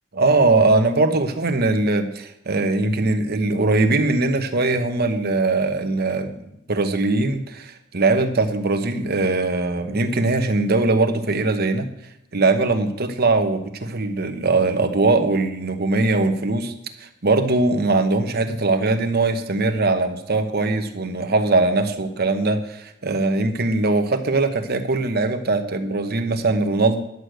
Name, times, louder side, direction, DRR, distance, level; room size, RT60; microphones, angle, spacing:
voice 1, 0.1-6.4 6.7-11.9 12.3-16.7 17.0-27.0, right 3 dB, 50° right, 7 dB, 1.1 m, -21 dB
11.0 x 6.5 x 7.9 m, 0.83 s
head